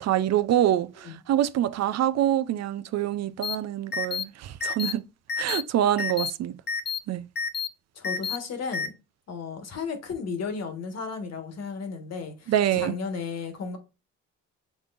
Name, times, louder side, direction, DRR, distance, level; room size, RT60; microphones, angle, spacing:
voice 1, 0.0-5.0 5.4-6.5 7.1-7.2 12.5-12.9, right 11 dB, 60° right, 0.5 m, -25 dB
sound 1, 3.4-3.6 3.9-4.2 4.6-4.9 5.3-5.6 6.0-6.3 6.7-7.0 7.4-7.7 8.0-8.4 8.7-8.9, left 6 dB, 35° left, 0.8 m, -29 dB
voice 2, 7.9-8.9 9.3-13.8, left 5 dB, 55° left, 1.5 m, -34 dB
5.9 x 3.6 x 2.5 m
cardioid pair, 90°, 30 cm